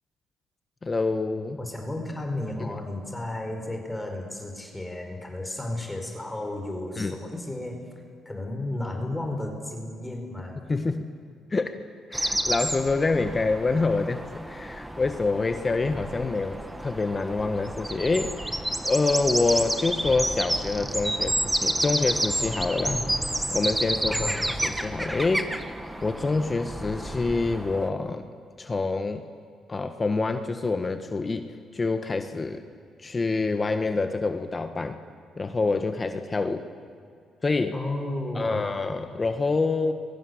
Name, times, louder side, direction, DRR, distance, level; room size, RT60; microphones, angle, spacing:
voice 1, 0.8-1.6 7.0-7.2 10.7-11.0 11.5-11.8 12.1-18.6 18.8-23.0 23.5-25.5 26.0-28.2 28.6-29.2 29.7-31.5 31.7-32.6 33.0-35.0 35.4-36.6 37.4-37.7 38.3-39.9, left 3 dB, 30° left, 7 dB, 1.5 m, -26 dB
voice 2, 1.6-7.9 8.2-10.6 22.9-23.0 24.1-24.5 37.7-38.7, left 1 dB, 10° left, 3 dB, 4.9 m, -33 dB
sound 1, 12.1-27.9, right 1 dB, 10° right, 1.7 m, -30 dB
29.5 x 22.5 x 8.0 m, 2.2 s
cardioid pair, 90°, 0 cm